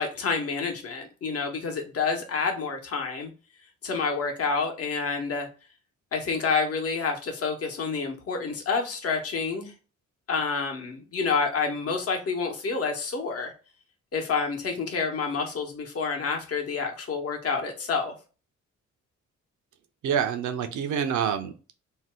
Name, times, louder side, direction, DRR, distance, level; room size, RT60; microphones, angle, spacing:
voice 1, 0.0-3.3 3.8-5.5 6.1-9.7 10.3-13.5 14.1-18.1, left 5 dB, 50° left, 3 dB, 1.0 m, -28 dB
voice 2, 20.0-21.7, right 8 dB, 70° right, 8 dB, 0.6 m, -27 dB
2.7 x 2.1 x 3.3 m, 0.35 s
cardioid pair, 70°, 31 cm